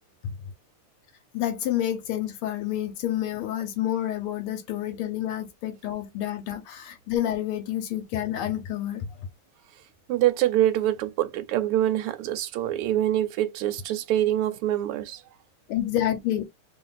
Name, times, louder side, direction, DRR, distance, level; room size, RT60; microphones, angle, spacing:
voice 1, 1.3-9.3 15.7-16.5, left 12 dB, 80° left, 1.5 m, -29 dB
voice 2, 10.1-15.2, right 12 dB, 90° right, 1.5 m, -25 dB
3.4 x 2.6 x 3.8 m
omnidirectional pair, 2.4 m